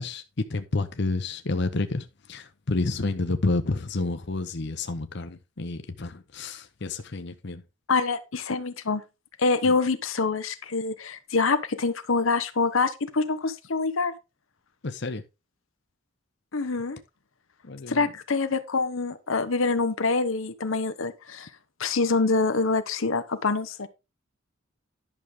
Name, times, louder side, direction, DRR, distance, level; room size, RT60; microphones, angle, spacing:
voice 1, 0.0-7.6 9.6-9.7 14.8-15.2 17.6-18.1, left 3 dB, 60° left, 0.8 m, -30 dB
voice 2, 7.9-9.0 9.4-14.1 16.5-17.0 17.9-21.5 21.8-23.9, left 4 dB, 85° left, 0.9 m, -25 dB
11.0 x 6.3 x 3.6 m
head